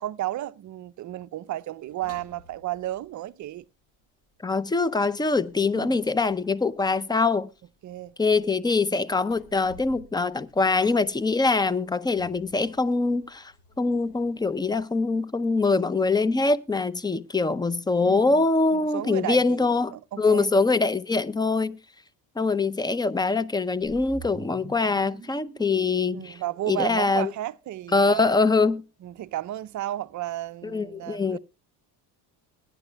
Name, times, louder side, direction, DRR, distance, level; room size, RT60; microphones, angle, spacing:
voice 1, 0.0-3.6 5.6-6.0 7.8-8.1 18.0-20.5 26.1-28.4 29.0-31.4, right 14 dB, 40° right, 0.5 m, -33 dB
sound 1, 1.8-4.0 4.2-14.8, left 2 dB, 55° left, 7.9 m, -54 dB
voice 2, 4.4-7.5 8.2-13.5 13.8-21.8 22.4-26.4 26.7-27.3 27.9-28.8 30.6-31.4, left 3 dB, 10° left, 0.5 m, -23 dB
sound 2, 23.8-28.1, right 5 dB, 20° right, 2.0 m, -46 dB
21.5 x 9.9 x 2.2 m
supercardioid pair, 90°, 48 cm